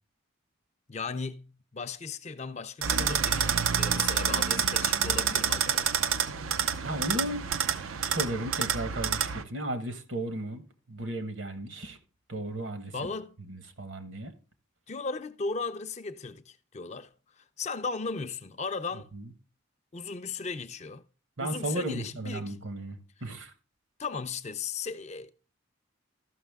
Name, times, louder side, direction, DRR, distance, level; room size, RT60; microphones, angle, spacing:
voice 1, 0.9-5.9 12.9-13.4 14.9-19.1 19.9-21.0 21.4-22.6 24.0-25.3, left 4 dB, 35° left, 0.5 m, -36 dB
sound 1, 2.8-9.4, right 8 dB, 85° right, 0.6 m, -28 dB
voice 2, 6.8-7.5 8.0-12.0 12.3-13.1 13.5-14.3 19.1-19.3 21.4-23.5, right 1 dB, 65° right, 1.2 m, -35 dB
13.5 x 6.0 x 3.5 m
head